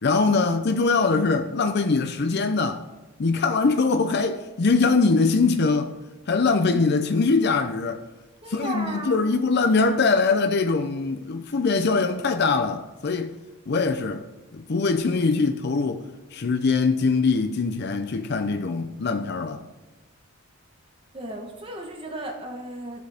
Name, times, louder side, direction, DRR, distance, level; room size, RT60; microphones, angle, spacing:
voice 1, 0.0-2.9 3.2-5.9 6.3-8.0 8.5-13.4 13.7-14.3 14.5-16.0 16.3-19.6, left 4 dB, 50° left, 0.6 m, -22 dB
voice 2, 8.4-9.3 21.1-23.1, right 1 dB, 25° right, 1.2 m, -35 dB
13.0 x 7.5 x 3.5 m
head